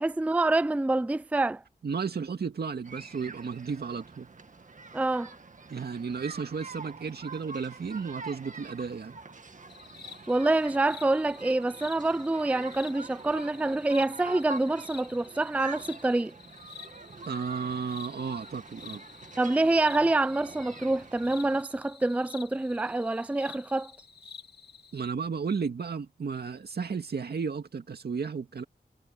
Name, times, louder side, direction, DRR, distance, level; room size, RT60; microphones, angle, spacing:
voice 1, 0.0-1.6 4.9-5.3 10.3-16.3 19.4-23.9, right 2 dB, 10° right, 0.4 m, -26 dB
voice 2, 1.8-4.3 5.7-9.1 17.3-19.0 24.9-28.6, right 5 dB, 75° right, 2.1 m, -33 dB
sound 1, 2.8-21.6, right 3 dB, 50° right, 1.7 m, -45 dB
sound 2, 9.7-25.1, left 6 dB, 75° left, 2.7 m, -49 dB
wide cardioid pair, 65°, 17 cm